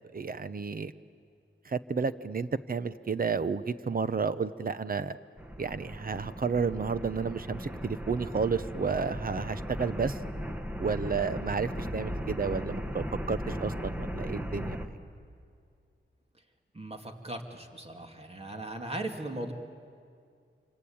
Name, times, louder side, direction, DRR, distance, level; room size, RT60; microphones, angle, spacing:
voice 1, 0.1-0.9 1.6-5.2 5.6-10.2 10.8-14.8, right 5 dB, 45° right, 14 dB, 0.8 m, -31 dB
sound 1, 5.4-14.9, equal, 10° right, 1.5 m, -37 dB
voice 2, 16.7-19.5, right 1 dB, 30° right, 4 dB, 2.4 m, -38 dB
26.5 x 25.0 x 8.7 m, 2.3 s
wide cardioid pair, 115°, 20 cm